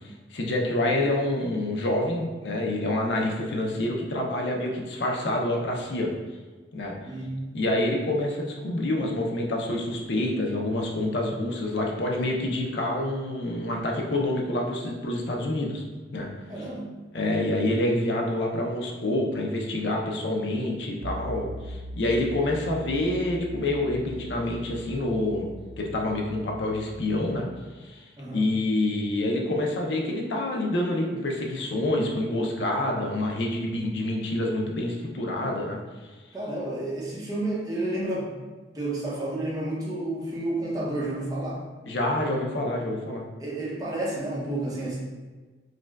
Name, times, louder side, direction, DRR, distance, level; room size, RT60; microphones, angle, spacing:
voice 1, 0.3-6.1 6.7-6.9 7.5-15.8 16.1-16.3 17.1-25.5 25.8-27.5 27.8-28.0 28.3-35.8 41.8-43.3, left 1 dB, 70° left, 0 dB, 0.6 m, -27 dB
voice 2, 7.1-7.4 16.5-16.9 28.2-28.5 36.3-38.3 38.7-41.6 43.4-45.0, right 1 dB, 20° right, -6 dB, 0.8 m, -30 dB
sound 1, 21.0-27.7, equal, 70° right, 0.3 m, -41 dB
4.8 x 2.2 x 2.3 m, 1.3 s
head